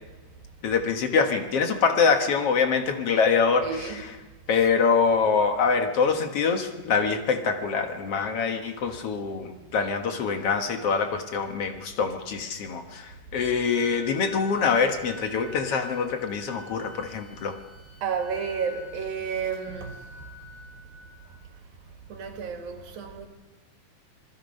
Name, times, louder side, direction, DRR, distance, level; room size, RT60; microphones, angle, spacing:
voice 1, 0.6-4.2 4.5-17.6, left 5 dB, 55° left, 1.9 m, -24 dB
voice 2, 3.6-4.0 18.0-20.3 22.1-23.3, right 6 dB, 90° right, 3.9 m, -31 dB
Wind instrument woodwind instrument, 13.6-21.4, left 3 dB, 80° left, 4.3 m, -47 dB
26.5 x 20.5 x 5.4 m
omnidirectional pair, 4.0 m